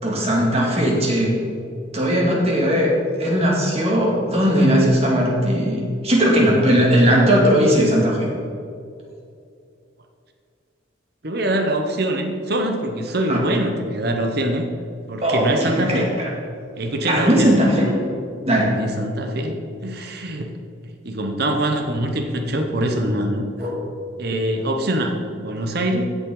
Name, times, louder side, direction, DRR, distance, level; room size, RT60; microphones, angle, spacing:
voice 1, 0.0-1.3 1.9-2.9 3.2-8.3 13.3-13.4 15.2-16.3 17.1-18.0 18.5-18.8 23.6-23.8, equal, 35° right, -3 dB, 2.3 m, -18 dB
voice 2, 11.2-14.7 15.1-16.1 16.8-17.6 18.7-20.5 21.0-23.5 24.2-26.2, right 1 dB, 55° right, 4 dB, 1.1 m, -24 dB
15.5 x 7.2 x 3.9 m, 2.4 s
head